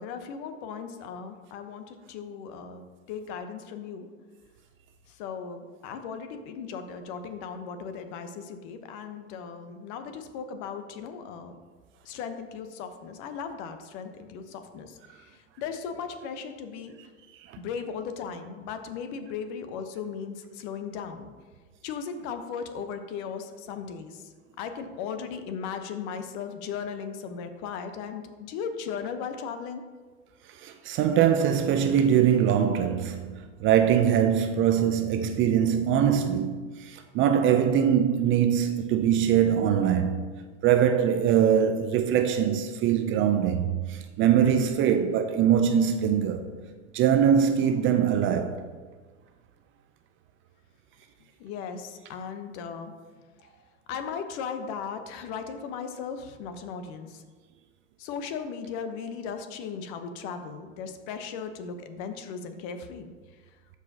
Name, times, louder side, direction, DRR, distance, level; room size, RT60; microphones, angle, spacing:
voice 1, 0.0-4.1 5.1-11.5 12.0-16.9 17.6-21.3 21.8-24.2 24.6-29.8 51.4-52.9 53.9-57.2 58.0-63.1, left 6 dB, 55° left, 1.0 m, -37 dB
voice 2, 30.6-40.2 40.6-46.5 46.9-48.6, right 9 dB, 30° right, 0.4 m, -23 dB
12.5 x 4.8 x 2.8 m
hypercardioid pair, 105°, 41 cm